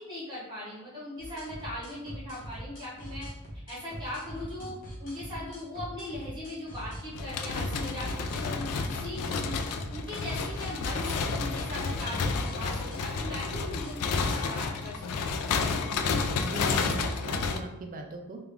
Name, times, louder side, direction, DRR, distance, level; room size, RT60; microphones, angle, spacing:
voice 1, 0.0-3.3 3.7-15.7, left 1 dB, 20° right, -8 dB, 1.2 m, -40 dB
sound 1, 1.2-14.4, equal, 40° left, 1.2 m, -42 dB
sound 2, 7.1-17.6, left 4 dB, 75° left, 0.4 m, -31 dB
voice 2, 15.9-18.4, right 2 dB, 40° right, 3 dB, 0.4 m, -40 dB
3.4 x 2.3 x 3.5 m, 0.92 s
head